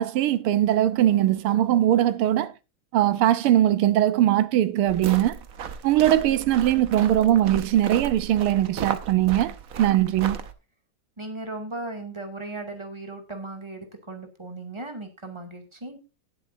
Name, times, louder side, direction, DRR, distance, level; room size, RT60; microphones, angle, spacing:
voice 1, 0.0-2.5 2.9-5.4 5.8-10.4, right 12 dB, 85° right, 1.7 m, -21 dB
sound 1, 4.9-10.5, right 7 dB, 55° right, 1.1 m, -35 dB
voice 2, 11.2-16.0, right 2 dB, 15° right, 2.3 m, -37 dB
18.5 x 7.6 x 2.7 m
omnidirectional pair, 2.4 m